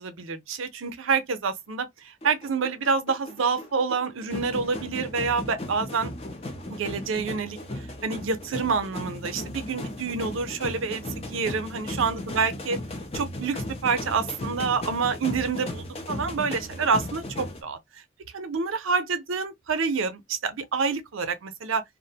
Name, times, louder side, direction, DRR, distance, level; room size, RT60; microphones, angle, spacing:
voice 1, 0.0-1.9 2.2-6.1 6.7-7.6 8.0-12.8 13.1-17.8 18.3-21.8, right 5 dB, 75° right, 0.6 m, -27 dB
sound 1, 2.2-17.6, left 1 dB, 30° left, 0.5 m, -36 dB
2.5 x 2.0 x 2.7 m
head